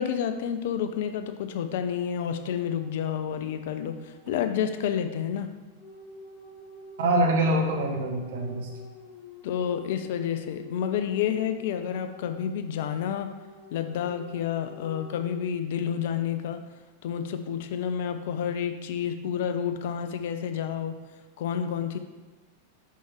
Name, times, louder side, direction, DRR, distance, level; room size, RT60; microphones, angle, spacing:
voice 1, 0.0-5.5 9.4-13.3 13.7-16.7 17.0-21.0 21.4-22.0, left 8 dB, 55° left, 9 dB, 0.4 m, -29 dB
sound 1, 2.2-4.6 5.8-15.2, left 2 dB, 10° left, 2.3 m, -48 dB
voice 2, 7.0-8.7, right 1 dB, 55° right, 1 dB, 1.1 m, -24 dB
6.1 x 5.7 x 3.5 m, 1.2 s
figure-of-eight pair, 90°, 0 cm